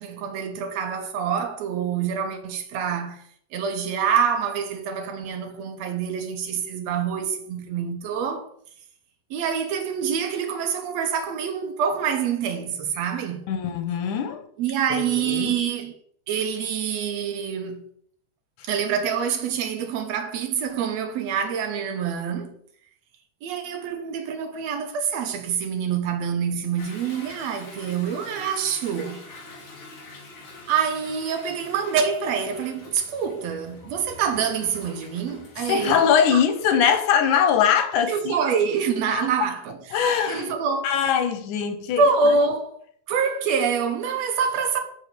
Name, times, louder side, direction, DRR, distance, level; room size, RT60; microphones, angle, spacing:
voice 1, 0.0-3.2 3.5-8.5 9.3-13.5 14.6-15.9 16.3-17.8 18.6-22.5 23.4-29.3 30.7-36.4 38.1-40.0 40.3-40.9 42.0-42.8 43.1-44.8, right 6 dB, 70° right, 1.9 m, -26 dB
voice 2, 13.5-14.4 14.9-15.6 35.7-38.4 39.1-39.5 39.9-40.5 40.8-42.0, left 8 dB, 90° left, 2.4 m, -22 dB
Toilet flush / Drip / Trickle dribble, 26.8-36.9, left 2 dB, 45° left, 2.1 m, -45 dB
6.9 x 4.7 x 6.7 m
omnidirectional pair, 3.4 m